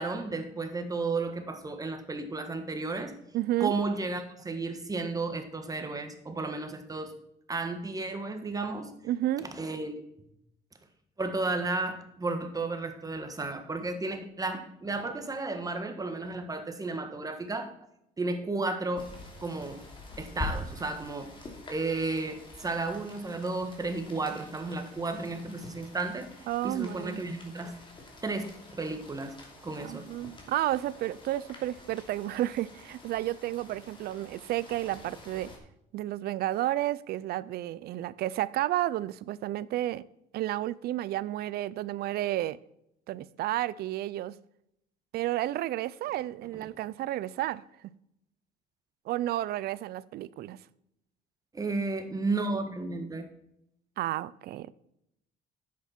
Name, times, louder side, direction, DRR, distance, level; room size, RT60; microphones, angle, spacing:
voice 1, 0.0-3.1 3.6-7.1 7.5-8.9 9.4-9.9 11.2-17.7 18.2-19.1 19.4-19.8 20.2-21.3 21.7-26.3 26.6-27.7 28.2-28.5 28.8-29.4 29.6-30.1 46.5-46.7 51.5-53.3, right 3 dB, 20° right, 1.5 m, -33 dB
voice 2, 3.3-3.7 9.0-9.5 26.5-27.2 29.8-35.5 35.9-40.0 40.3-42.6 43.1-44.3 45.1-47.6 49.1-50.6 54.0-54.7, right 14 dB, 70° right, 0.5 m, -31 dB
Rain, 19.0-35.6, left 2 dB, 30° left, 2.8 m, -46 dB
10.0 x 8.3 x 4.4 m
cardioid pair, 110°, 17 cm